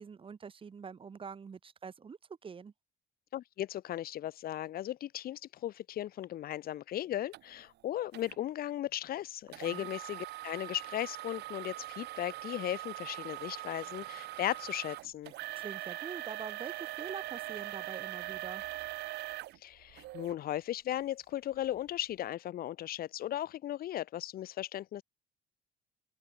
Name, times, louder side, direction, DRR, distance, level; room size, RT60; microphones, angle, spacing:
voice 1, 0.0-2.7 9.6-9.9 15.5-18.6, right 6 dB, 30° right, 2.4 m, -45 dB
voice 2, 3.3-15.3 19.6-25.0, left 12 dB, 60° left, 1.5 m, -37 dB
sound 1, 7.3-7.4 8.1-8.4 9.5-20.4 20.9-21.0 21.6-21.8, right 17 dB, 80° right, 1.8 m, -42 dB
open air
cardioid pair, 110°, 17 cm